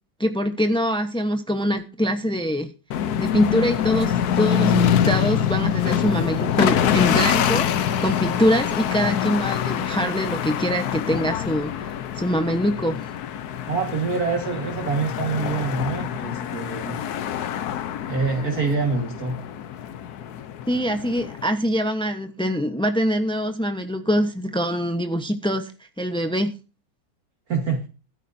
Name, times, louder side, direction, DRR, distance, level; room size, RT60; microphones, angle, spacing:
voice 1, 0.2-2.7 3.2-13.1 20.7-25.7 26.0-26.5, equal, 5° left, 0.5 m, -24 dB
sound 1, 2.9-21.5, left 9 dB, 60° left, 1.2 m, -25 dB
voice 2, 13.7-17.0 18.1-19.4 27.5-27.8, right 4 dB, 50° right, 2.2 m, -25 dB
14.5 x 12.5 x 2.7 m
omnidirectional pair, 2.1 m